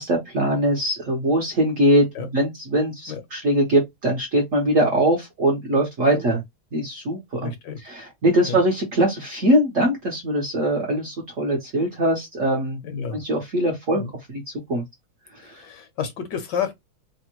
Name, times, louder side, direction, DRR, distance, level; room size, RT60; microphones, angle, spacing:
voice 1, 0.0-2.1 2.3-6.4 6.7-7.5 7.9-12.8 13.3-14.0 14.3-14.4 14.7-14.8, right 1 dB, 55° right, 0.9 m, -21 dB
voice 2, 7.4-7.9 8.4-8.6 12.8-13.2 13.9-14.1 15.4-16.7, left 7 dB, 70° left, 1.2 m, -31 dB
3.4 x 2.1 x 2.9 m
omnidirectional pair, 2.2 m